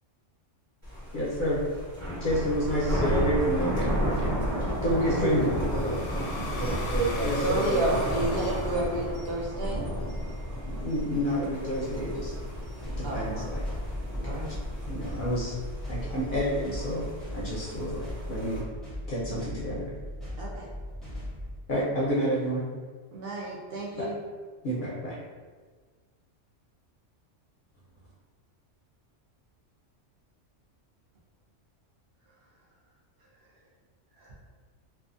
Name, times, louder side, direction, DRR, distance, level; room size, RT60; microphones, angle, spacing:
Thunder, 0.8-18.6, equal, 25° right, 0.9 m, -33 dB
voice 1, 1.1-1.6 2.2-3.9 4.8-5.5 7.2-7.7 10.7-12.3 13.1-13.6 14.2-14.4 14.9-15.6 15.9-18.6 19.1-19.9 21.7-22.6 24.0-24.1 24.6-25.2, equal, 55° left, -7 dB, 0.6 m, -29 dB
sound 1, 3.3-9.2, left 2 dB, 85° left, 0.9 m, -39 dB
voice 2, 4.3-5.4 5.7-6.0 6.6-8.0, right 2 dB, 80° right, -5 dB, 1.1 m, -31 dB
voice 3, 7.4-9.8 13.0-13.4 14.2-14.5 20.4-20.7 23.1-24.2 34.2-34.3, right 2 dB, 60° right, -4 dB, 0.7 m, -31 dB
sound 2, 12.8-21.6, left 1 dB, ahead, 0.4 m, -39 dB
2.5 x 2.2 x 2.5 m, 1.5 s
omnidirectional pair, 1.3 m